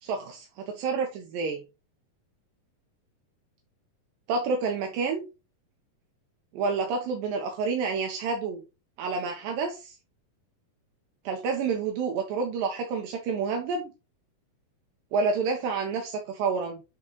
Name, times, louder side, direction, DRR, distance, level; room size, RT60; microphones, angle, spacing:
voice 1, 0.0-1.6 4.3-5.2 6.5-8.6 9.0-9.9 11.3-13.9 15.1-16.8, right 4 dB, 80° right, 2 dB, 2.6 m, -29 dB
9.8 x 3.8 x 3.0 m, 0.29 s
omnidirectional pair, 4.1 m